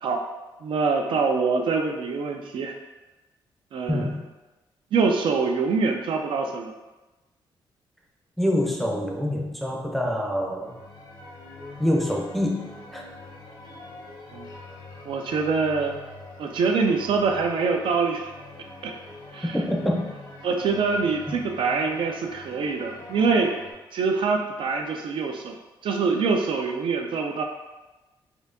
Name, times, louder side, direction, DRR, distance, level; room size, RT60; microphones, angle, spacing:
voice 1, 0.6-2.7 3.7-4.1 4.9-6.7 14.3-14.5 15.1-16.0 16.4-18.3 18.8-18.9 19.3-19.6 20.4-23.5 23.9-25.6 25.8-27.4, right 4 dB, 65° right, 3 dB, 0.4 m, -24 dB
voice 2, 3.9-4.2 8.4-10.7 11.8-12.7 12.9-13.0 19.5-20.1, left 1 dB, ahead, -1 dB, 0.5 m, -25 dB
sound 1, 10.6-23.7, left 2 dB, 50° left, 0.7 m, -44 dB
4.2 x 2.6 x 2.5 m, 1.1 s
cardioid pair, 125°, 9 cm